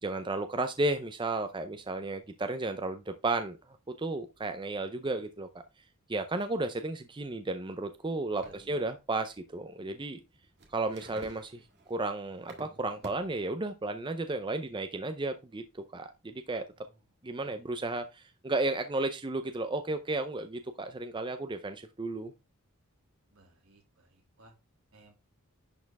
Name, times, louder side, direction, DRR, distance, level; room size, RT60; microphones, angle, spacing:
voice 1, 0.0-5.6 6.1-10.2 10.7-16.6 17.2-22.3, right 2 dB, 20° right, 0.5 m, -33 dB
sound 1, 8.4-8.8 10.3-13.4, right 2 dB, 50° right, 1.7 m, -50 dB
voice 2, 8.4-8.8 16.9-17.0 17.4-17.6 23.3-24.5 24.9-25.1, right 2 dB, 75° right, 2.7 m, -60 dB
10.5 x 4.4 x 3.4 m
head